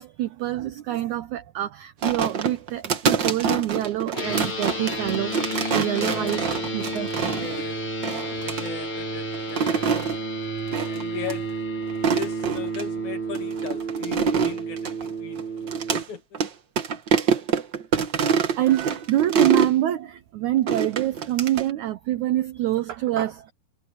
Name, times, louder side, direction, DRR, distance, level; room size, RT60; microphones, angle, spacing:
voice 1, 0.0-5.4 5.7-6.4 6.7-7.1 18.5-23.5, right 13 dB, 85° right, 1.7 m, -26 dB
sound 1, 2.0-7.6 8.0-8.7 9.3-10.2 10.7-11.0 11.3-11.4 11.9-12.8 13.3-16.1 16.3-16.5 16.8-19.7 20.7-21.7, right 6 dB, 70° right, 1.1 m, -25 dB
sound 2, 4.1-16.0, right 2 dB, 35° left, 5.2 m, -31 dB
voice 2, 6.0-6.7 7.4-7.8 8.4-9.9 10.8-11.6 12.1-15.4 15.9-16.4, left 6 dB, 50° left, 3.6 m, -37 dB
omnidirectional pair, 4.5 m